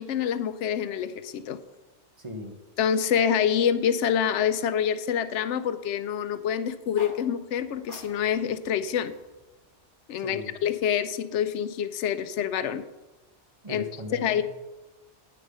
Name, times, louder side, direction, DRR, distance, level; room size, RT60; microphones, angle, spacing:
voice 1, 0.0-1.6 2.8-9.1 10.1-12.8 13.7-13.8 14.2-14.4, left 8 dB, 85° left, 12 dB, 0.9 m, -26 dB
voice 2, 2.2-2.5 10.2-10.5 13.6-14.4, left 1 dB, 30° right, 3 dB, 1.0 m, -38 dB
sound 1, 6.7-10.9, equal, 45° right, 3.2 m, -50 dB
9.6 x 6.7 x 5.4 m, 1.1 s
omnidirectional pair, 1.2 m